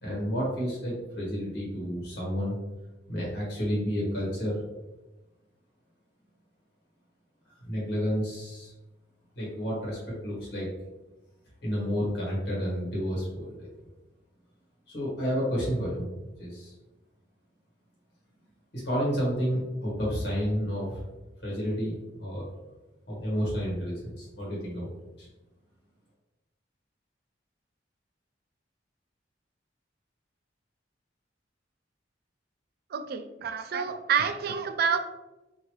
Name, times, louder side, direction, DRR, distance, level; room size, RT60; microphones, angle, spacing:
voice 1, 0.0-2.6 3.1-4.6 7.6-8.7 9.3-10.7 11.6-13.7 14.9-16.1 16.4-16.7 18.7-21.0 21.4-22.5 23.1-24.9 25.2-25.3, equal, 60° left, -5 dB, 1.3 m, -30 dB
voice 2, 32.9-35.0, right 6 dB, 55° right, 9 dB, 0.3 m, -28 dB
3.0 x 2.7 x 3.0 m, 1.1 s
head